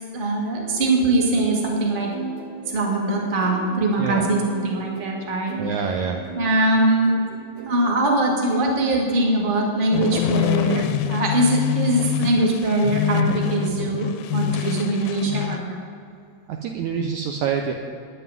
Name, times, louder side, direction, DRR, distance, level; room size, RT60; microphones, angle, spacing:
voice 1, 0.1-2.1 2.7-5.5 6.3-7.2 7.7-10.8 11.1-15.8, right 2 dB, 25° right, -1 dB, 1.2 m, -22 dB
sound 1, 0.5-9.6 10.0-10.5, right 4 dB, 60° right, 2.0 m, -37 dB
voice 2, 4.0-4.3 5.6-6.2 16.5-17.7, right 7 dB, 85° right, 3 dB, 1.7 m, -26 dB
sound 2, 9.9-15.6, left 12 dB, 85° left, 2.3 m, -25 dB
9.8 x 7.8 x 9.2 m, 2.5 s
omnidirectional pair, 4.2 m